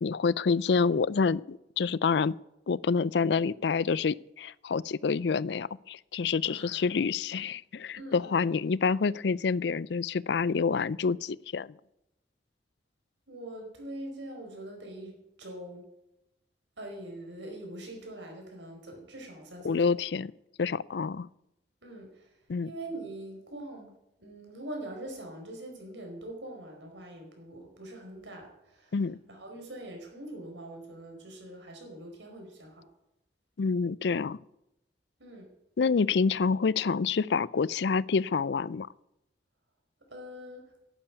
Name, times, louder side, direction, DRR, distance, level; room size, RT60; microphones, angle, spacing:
voice 1, 0.0-2.3 2.7-11.8 19.6-20.3 20.6-21.3 22.5-22.7 28.9-29.2 33.6-34.4 35.8-38.9, left 5 dB, 70° left, 22 dB, 0.4 m, -27 dB
voice 2, 6.5-6.9 7.9-8.5 13.3-15.9 16.8-20.0 21.8-22.4 22.6-23.9 24.2-28.9 29.3-32.9 35.2-35.5 40.1-40.6, right 1 dB, 90° right, 2 dB, 4.8 m, -43 dB
11.5 x 8.9 x 9.4 m, 0.88 s
head